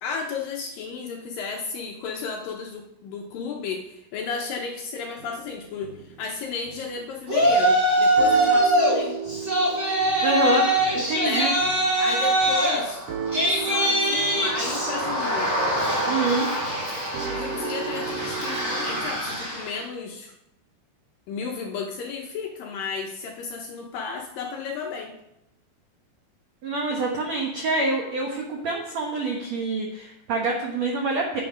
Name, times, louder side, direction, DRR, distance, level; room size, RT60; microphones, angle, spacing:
voice 1, 0.0-9.2 11.2-11.6 12.0-13.0 13.5-15.5 17.3-20.3 21.3-25.2, left 5 dB, 75° left, 1 dB, 2.1 m, -33 dB
sound 1, 5.2-6.3 6.6-7.0 7.4-7.9 8.2-19.1, right 6 dB, 65° right, 2.3 m, -36 dB
Yell, 7.3-8.9 9.3-19.7, right 1 dB, 20° right, 2.7 m, -23 dB
voice 2, 10.2-10.7 10.9-11.5 16.1-16.5 26.6-31.4, right 3 dB, 80° right, 1 dB, 1.5 m, -26 dB
9.3 x 8.8 x 5.0 m, 0.86 s
omnidirectional pair, 4.9 m